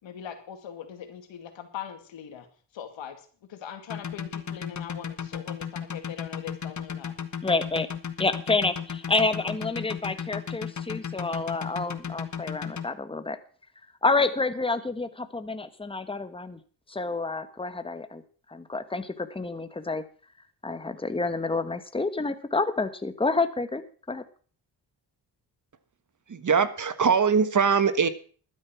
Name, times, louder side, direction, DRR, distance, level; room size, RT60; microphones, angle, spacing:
voice 1, 0.0-2.5 2.7-7.1, left 9 dB, 75° left, 7 dB, 2.3 m, -41 dB
sound 1, 3.9-12.8, left 7 dB, 40° left, 1.4 m, -34 dB
voice 2, 7.4-7.9 8.2-13.4 14.0-16.6 16.9-18.2 18.5-20.0 20.6-23.8 24.1-24.2, left 3 dB, 10° left, 11 dB, 1.3 m, -28 dB
voice 3, 26.3-28.1, right 6 dB, 40° right, 13 dB, 1.3 m, -22 dB
12.0 x 9.7 x 5.9 m, 0.43 s
cardioid pair, 65°, 46 cm